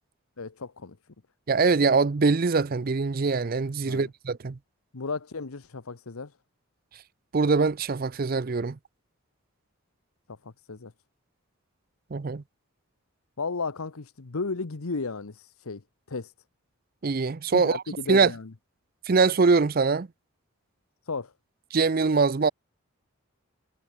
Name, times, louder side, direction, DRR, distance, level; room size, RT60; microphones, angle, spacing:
voice 1, 0.4-1.0 3.8-4.1 4.9-6.3 10.3-10.9 13.4-15.8 16.1-16.3 17.5-18.5 21.1-21.3, left 4 dB, 75° left, 1.0 m, -34 dB
voice 2, 1.5-4.6 7.3-8.8 12.1-12.4 17.0-17.8 18.1-18.3 19.1-20.1 21.7-22.5, right 4 dB, 40° right, 0.5 m, -23 dB
head